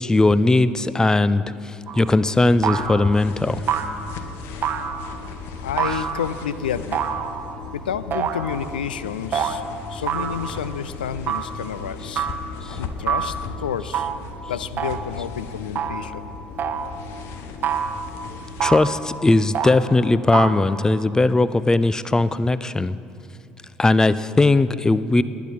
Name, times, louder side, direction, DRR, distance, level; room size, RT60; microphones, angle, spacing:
voice 1, 0.0-3.6 5.8-6.1 12.7-12.8 18.6-23.0 23.8-25.2, left 2 dB, 15° left, 16 dB, 0.5 m, -19 dB
sound 1, 1.9-2.2 2.6-3.2 3.7-4.1 4.6-5.2 5.8-6.4 6.9-7.6 8.1-8.7 9.3-9.6 10.1-10.6 11.3-11.6 12.2-12.5 13.1-13.4 13.9-14.3 14.8-15.2 15.8-16.1 16.6-17.0 17.6-18.1 18.6-19.0 19.5-19.8 20.3-20.6, right 7 dB, 40° right, 0.9 m, -26 dB
sound 2, 2.3-18.9, left 4 dB, 55° left, 1.0 m, -37 dB
voice 2, 5.6-7.0 7.7-9.6 9.9-12.3 12.8-14.1 14.5-16.3, left 8 dB, 75° left, 15 dB, 0.4 m, -30 dB
19.5 x 10.5 x 4.2 m, 2.5 s
figure-of-eight pair, 60°, 5 cm